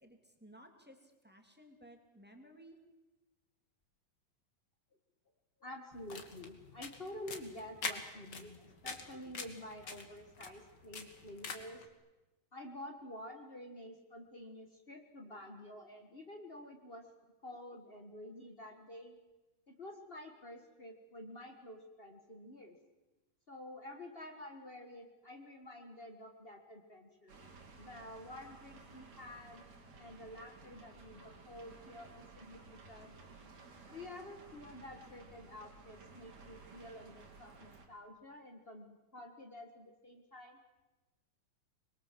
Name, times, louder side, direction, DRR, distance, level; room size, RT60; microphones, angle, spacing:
voice 1, 0.0-2.8, equal, 5° right, 3 dB, 2.3 m, -58 dB
voice 2, 5.6-11.8 12.5-17.1 17.4-19.1 19.7-22.8 23.5-27.3 27.8-29.6 30.0-33.1 33.9-40.6, left 1 dB, 60° left, 4 dB, 0.6 m, -50 dB
sound 1, 5.9-11.8, left 4 dB, 35° left, 2.1 m, -45 dB
sound 2, 27.3-37.9, right 4 dB, 55° right, 4.1 m, -56 dB
25.0 x 22.5 x 7.6 m, 1.1 s
omnidirectional pair, 4.1 m